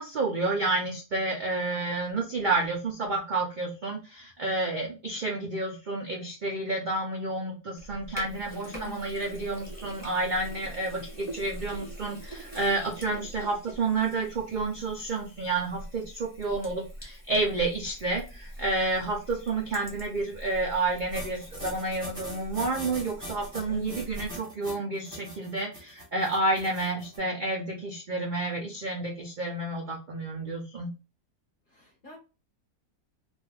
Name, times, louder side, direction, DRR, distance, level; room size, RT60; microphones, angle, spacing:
voice 1, 0.0-30.9, right 2 dB, 60° right, -1 dB, 0.5 m, -30 dB
Sink (filling or washing), 7.8-24.4, right 1 dB, 10° left, 1.1 m, -44 dB
voice 2, 8.7-9.0 23.7-24.0 31.7-32.2, left 1 dB, 45° left, 0 dB, 0.7 m, -43 dB
sound 1, 21.1-27.2, equal, 15° right, 0.9 m, -41 dB
2.6 x 2.3 x 3.2 m, 0.32 s
omnidirectional pair, 1.6 m